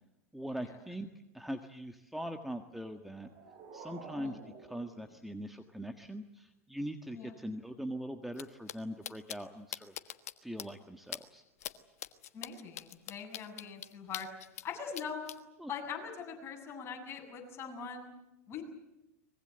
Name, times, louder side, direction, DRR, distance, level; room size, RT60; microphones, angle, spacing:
voice 1, 0.3-1.1 1.3-3.3 3.7-4.4 4.7-9.9 10.4-11.4 15.6-15.7, equal, ahead, 6 dB, 1.6 m, -41 dB
sound 1, 2.9-5.9, right 4 dB, 50° right, 7.8 m, -52 dB
sound 2, 8.3-8.4 8.7-8.8 9.0-9.4 9.7-10.3 10.6-10.7 11.1-11.2 11.6-11.7 12.0-14.7 14.9-15.4, left 12 dB, 75° left, 1.3 m, -41 dB
voice 2, 12.3-14.3 14.6-15.3 15.7-18.1 18.5-18.6, left 6 dB, 30° left, 2 dB, 7.7 m, -42 dB
24.5 x 22.0 x 7.9 m, 0.96 s
hypercardioid pair, 95°, 8 cm